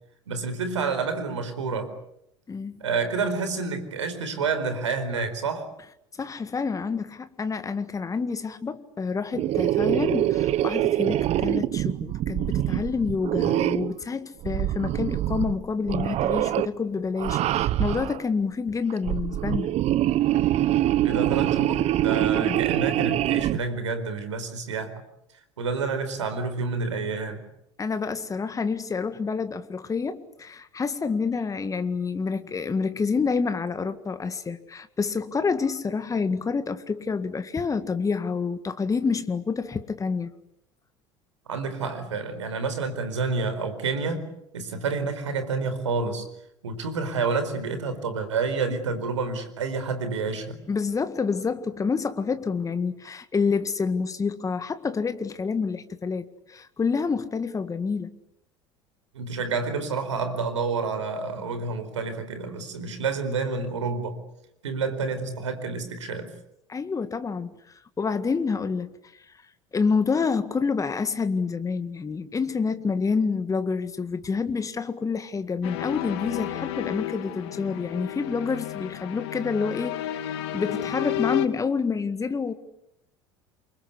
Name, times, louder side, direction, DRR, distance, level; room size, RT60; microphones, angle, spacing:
voice 1, 0.3-1.9 2.8-5.7 21.0-24.9 25.6-27.4 41.5-44.2 44.5-46.2 46.6-50.6 59.1-64.2 64.6-66.3, right 4 dB, 75° right, 4.5 m, -29 dB
voice 2, 2.5-2.8 6.2-19.7 22.1-22.6 27.8-40.3 50.7-58.1 66.7-69.4 69.7-82.5, left 5 dB, 20° left, 1.9 m, -28 dB
sound 1, 9.3-14.0 14.4-15.6 15.9-16.7 17.2-18.2 18.9-23.6, right 13 dB, 45° right, 1.0 m, -24 dB
sound 2, 75.6-81.5, left 13 dB, 65° left, 2.6 m, -32 dB
28.5 x 24.5 x 8.4 m
figure-of-eight pair, 70°, 15 cm